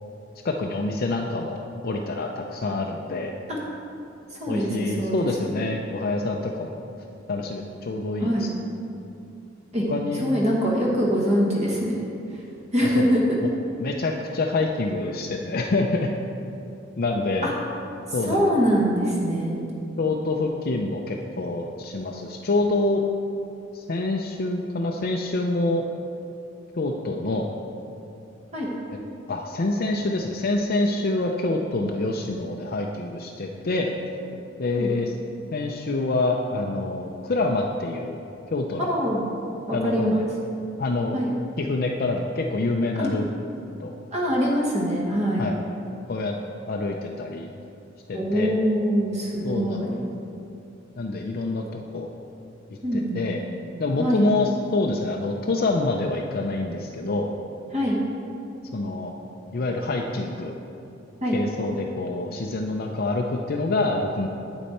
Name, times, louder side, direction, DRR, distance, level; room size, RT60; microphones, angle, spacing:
voice 1, 0.4-3.3 4.5-6.8 7.3-8.5 9.9-10.2 12.8-13.1 13.8-16.1 17.0-17.5 18.1-18.5 20.0-23.0 23.7-25.8 26.7-27.5 29.3-33.9 34.6-35.1 35.5-38.2 38.5-38.9 39.7-40.2 40.8-41.2 41.6-43.3 43.8-43.9 45.4-45.5 46.1-46.3 46.7-47.5 48.1-48.5 49.4-49.8 51.0-52.1 52.9-53.4 53.8-57.3 58.7-59.1 59.5-60.6 61.3-64.3, left 2 dB, 50° left, 1 dB, 0.5 m, -26 dB
voice 2, 4.4-5.6 8.2-8.5 9.7-9.8 10.2-12.0 12.7-13.4 17.4-17.5 18.3-19.6 28.5-28.7 34.8-34.9 38.9-39.2 39.7-40.3 41.1-41.3 42.9-43.1 44.1-45.5 48.1-50.0 52.8-53.3 54.0-54.2 57.7-58.0 61.2-61.4, equal, 35° right, -3 dB, 1.3 m, -23 dB
8.4 x 8.3 x 4.3 m, 2.7 s
head